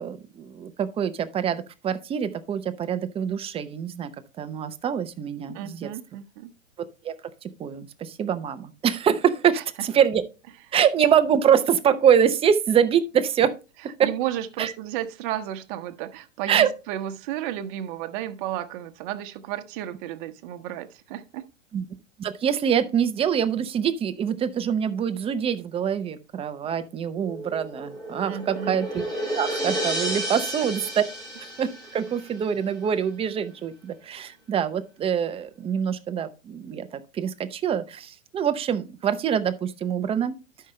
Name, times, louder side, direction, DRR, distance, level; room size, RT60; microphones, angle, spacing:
voice 1, 0.0-4.1 4.4-5.9 7.0-7.1 7.4-10.2 10.7-13.5 14.0-14.1 14.6-14.7 16.5-16.7 21.7-21.8 22.2-29.0 29.3-31.0 31.4-40.4, right 8 dB, 15° right, 10 dB, 0.6 m, -24 dB
voice 2, 5.5-6.5 9.5-9.6 14.0-21.5 28.3-28.8, right 12 dB, 40° right, 9 dB, 1.1 m, -33 dB
sound 1, 27.2-32.4, right 1 dB, 10° left, 2.9 m, -32 dB
12.0 x 5.7 x 3.1 m, 0.30 s
hypercardioid pair, 115°, 39 cm